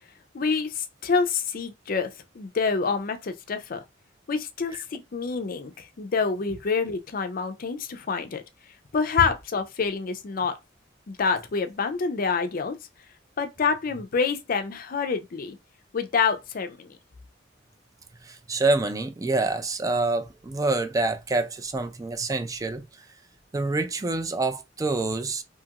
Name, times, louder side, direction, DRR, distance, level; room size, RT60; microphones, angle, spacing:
voice 1, 0.3-2.1 2.3-3.8 4.3-8.4 8.9-10.5 11.1-12.8 13.4-15.6 15.9-17.0, left 5 dB, 50° left, 0.5 m, -27 dB
voice 2, 18.2-22.8 23.5-25.4, right 3 dB, 20° right, 0.4 m, -26 dB
2.7 x 2.4 x 2.8 m
head